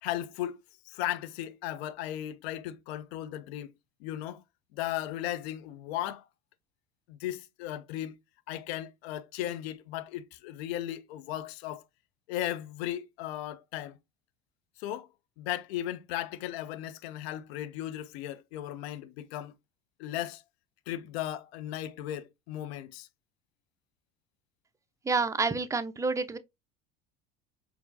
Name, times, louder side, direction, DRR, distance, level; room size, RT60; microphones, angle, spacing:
voice 1, 0.0-0.6 0.9-3.7 4.0-4.4 4.7-6.3 7.1-8.2 8.5-11.8 12.3-14.0 14.8-15.1 15.4-19.5 20.0-20.4 20.9-23.1, left 13 dB, 75° left, 0.5 m, -36 dB
voice 2, 25.0-26.4, right 4 dB, 10° right, 0.4 m, -28 dB
4.5 x 2.7 x 2.5 m
hypercardioid pair, 70°, 32 cm